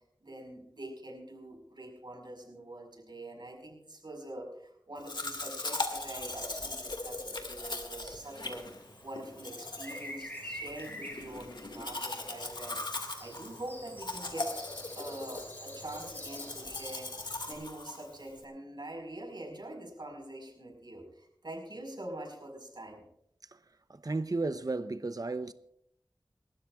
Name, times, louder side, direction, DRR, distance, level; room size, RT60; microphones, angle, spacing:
voice 1, 0.2-8.7 9.0-14.5 15.0-17.1 17.5-23.1, right 1 dB, 65° right, 5.0 m, -44 dB
Domestic sounds home sounds, 5.0-18.4, left 2 dB, 65° left, 2.1 m, -39 dB
sound 1, 8.3-17.5, equal, 25° left, 5.6 m, -48 dB
voice 2, 23.9-25.5, right 3 dB, 50° right, 0.7 m, -33 dB
29.0 x 13.0 x 2.4 m
wide cardioid pair, 40°, 8 cm